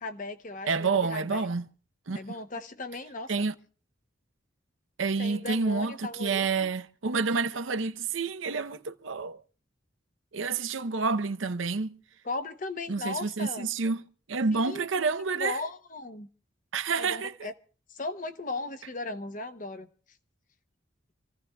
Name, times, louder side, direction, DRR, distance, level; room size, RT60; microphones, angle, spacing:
voice 1, 0.0-1.4 2.1-3.5 5.2-6.7 12.2-13.7 14.5-15.1 15.3-16.3 17.0-17.5 17.9-19.9, left 3 dB, 40° left, 0.8 m, -37 dB
voice 2, 0.6-1.6 2.1-2.2 3.3-3.5 5.0-9.4 10.3-12.0 12.9-14.0 14.3-15.6 16.7-17.3, right 4 dB, 85° right, 0.7 m, -29 dB
27.5 x 15.0 x 2.3 m
head